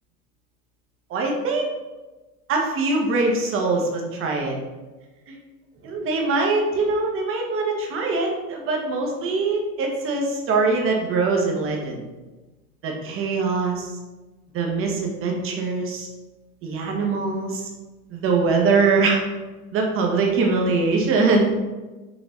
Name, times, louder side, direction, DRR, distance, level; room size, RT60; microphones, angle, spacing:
voice 1, 1.1-1.7 2.5-4.6 5.3-5.4 5.8-12.0 12.8-13.9 14.5-16.1 16.6-17.7 18.1-19.2 19.7-21.6, right 3 dB, 25° right, 1 dB, 1.3 m, -22 dB
6.2 x 4.5 x 4.0 m, 1.2 s
hypercardioid pair, 110°, 49 cm